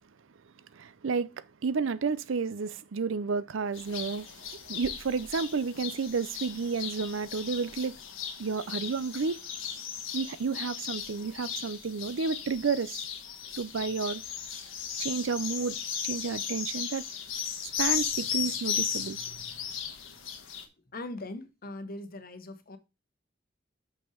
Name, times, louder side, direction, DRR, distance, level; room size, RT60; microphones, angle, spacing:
voice 1, 0.7-8.0 8.4-9.4 10.1-13.0 13.6-14.2 15.0-15.8 16.0-17.0 17.8-19.2, right 5 dB, 75° right, 0.5 m, -31 dB
sound 1, 3.7-20.6, left 8 dB, 85° left, 1.3 m, -36 dB
voice 2, 20.9-22.8, left 2 dB, 50° left, 1.1 m, -40 dB
6.3 x 5.6 x 4.9 m
head